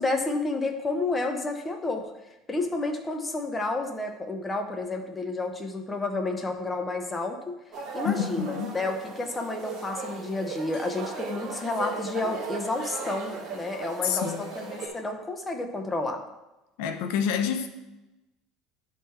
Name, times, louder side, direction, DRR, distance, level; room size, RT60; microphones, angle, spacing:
voice 1, 0.0-2.0 2.5-7.6 7.9-16.2, left 2 dB, 10° left, 0.7 m, -30 dB
sound 1, 7.7-14.9, right 3 dB, 30° right, 1.9 m, -37 dB
voice 2, 8.0-8.8 14.0-14.5 16.8-17.7, left 8 dB, 75° left, 0.7 m, -28 dB
11.0 x 3.8 x 4.2 m
cardioid pair, 165°, 0 cm